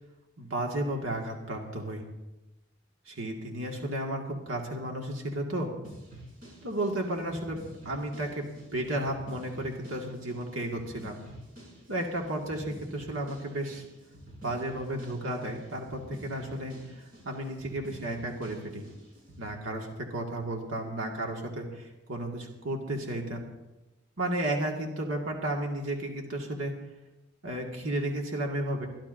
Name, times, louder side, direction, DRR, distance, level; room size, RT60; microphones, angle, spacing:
voice 1, 0.4-2.0 3.1-5.7 6.6-7.6 7.9-11.2 11.9-13.8 14.4-18.8 19.4-23.5 24.2-26.7 27.4-28.9, right 1 dB, 85° right, 0 dB, 1.9 m, -33 dB
sound 1, 5.8-19.6, equal, 45° right, 5.6 m, -49 dB
26.5 x 11.5 x 2.6 m, 1.0 s
head